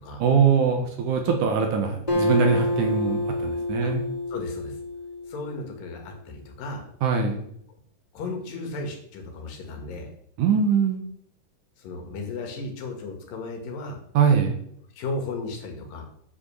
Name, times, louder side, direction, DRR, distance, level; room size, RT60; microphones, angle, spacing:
voice 1, 0.2-4.0 7.0-7.4 10.4-11.0 14.1-14.5, right 6 dB, 70° right, 4 dB, 2.5 m, -22 dB
Acoustic guitar, 2.1-5.7, left 1 dB, 15° left, 1.9 m, -27 dB
voice 2, 4.3-4.8 5.2-6.9 8.1-10.1 11.8-14.0 15.0-16.0, left 3 dB, 75° left, 3 dB, 3.5 m, -35 dB
8.5 x 5.3 x 6.9 m, 0.69 s
omnidirectional pair, 4.0 m